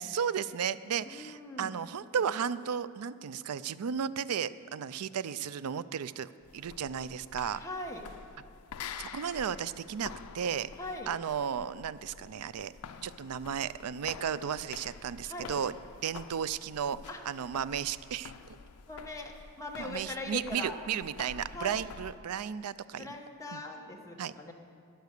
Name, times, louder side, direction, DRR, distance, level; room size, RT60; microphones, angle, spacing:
voice 1, 0.0-7.6 9.0-10.7 11.1-12.7 13.0-15.7 16.0-17.0 17.3-18.3 19.8-23.1 23.5-23.6 24.2-24.3, right 8 dB, 75° right, 16 dB, 0.4 m, -34 dB
voice 2, 1.1-1.7 7.6-8.0 10.7-11.1 15.2-15.5 17.1-17.2 18.9-19.3 19.6-20.7 21.2-21.8 23.0-24.5, left 2 dB, 15° left, 0 dB, 1.2 m, -41 dB
sound 1, 6.4-22.2, left 6 dB, 80° left, 0.5 m, -48 dB
13.5 x 9.3 x 6.6 m, 2.4 s
head